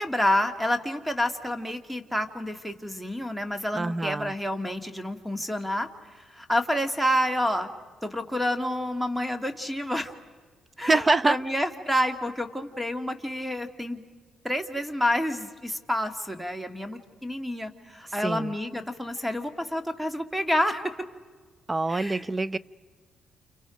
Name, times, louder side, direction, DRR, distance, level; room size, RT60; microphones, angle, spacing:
voice 1, 0.0-7.7 8.0-10.1 10.8-14.0 14.4-21.0 21.9-22.3, equal, 5° right, 1.9 m, -29 dB
voice 2, 3.7-4.3 10.9-11.4 18.2-18.5 21.7-22.6, right 3 dB, 25° right, 0.6 m, -25 dB
29.5 x 29.0 x 5.1 m
cardioid pair, 90°, 0 cm